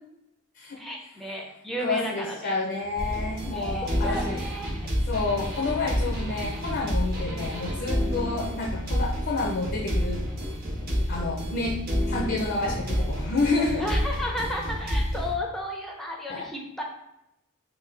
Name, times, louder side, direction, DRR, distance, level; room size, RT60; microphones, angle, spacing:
voice 1, 0.8-2.6 3.5-4.8 7.2-7.5 8.2-8.5 13.8-16.8, equal, ahead, -1 dB, 0.5 m, -33 dB
voice 2, 1.8-4.4 5.1-10.3 10.8-11.8 12.1-13.9 16.3-16.4, left 3 dB, 50° left, 0 dB, 0.5 m, -29 dB
sound 1, 3.0-15.3, equal, 45° right, 0.9 m, -29 dB
3.9 x 2.3 x 3.2 m, 0.89 s
head